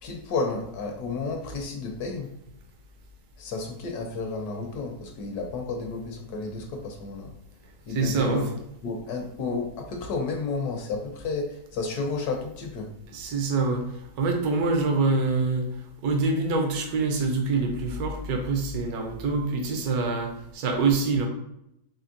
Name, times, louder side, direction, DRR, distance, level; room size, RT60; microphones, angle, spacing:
voice 1, 0.0-2.3 3.4-7.3 7.9-8.4 8.8-12.9, left 4 dB, 70° left, 3 dB, 1.2 m, -32 dB
voice 2, 7.9-8.4 13.1-21.3, right 3 dB, 70° right, 2 dB, 1.2 m, -25 dB
4.3 x 3.1 x 2.5 m, 0.81 s
omnidirectional pair, 1.8 m